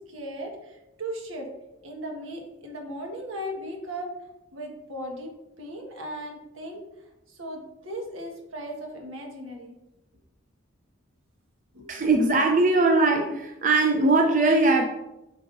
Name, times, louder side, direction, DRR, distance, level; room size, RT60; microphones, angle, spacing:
voice 1, 0.1-1.5 1.8-4.1 4.5-5.3 5.6-6.8 7.3-9.7 11.7-12.0, equal, 85° right, 1 dB, 1.5 m, -37 dB
voice 2, 11.9-14.9, right 2 dB, 40° right, 2 dB, 0.6 m, -20 dB
7.9 x 5.6 x 2.6 m, 0.94 s
head